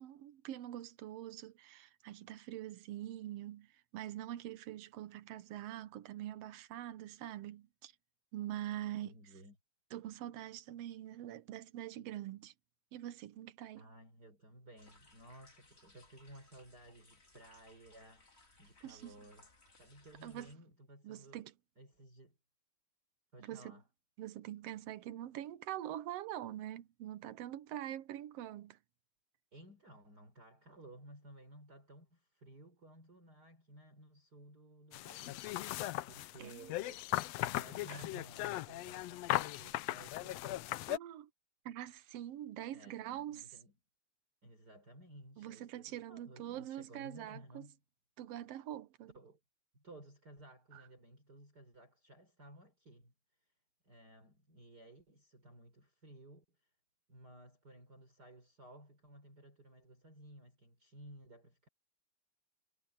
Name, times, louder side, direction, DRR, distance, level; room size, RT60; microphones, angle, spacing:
voice 1, 0.0-7.9 8.3-9.1 9.9-12.5 12.9-13.9 18.8-19.1 20.2-20.5 21.0-21.5 23.4-23.7 24.2-28.8 36.4-36.7 37.9-38.0 40.9-41.3 41.6-43.4 45.4-47.7 48.2-49.1 50.7-50.8, right 12 dB, 70° right, 1.6 m, -44 dB
voice 2, 8.7-9.6 13.8-19.5 19.8-21.4 21.8-22.4 23.3-23.8 29.5-37.1 37.4-40.7 42.6-43.7 44.4-47.8 49.1-49.4 49.7-53.1 53.8-56.7 57.1-61.7, right 1 dB, 30° right, 5.7 m, -57 dB
sound 1, 14.8-20.5, left 2 dB, 20° left, 2.5 m, -65 dB
sound 2, 34.9-41.0, left 16 dB, 80° left, 1.5 m, -38 dB
omnidirectional pair, 3.6 m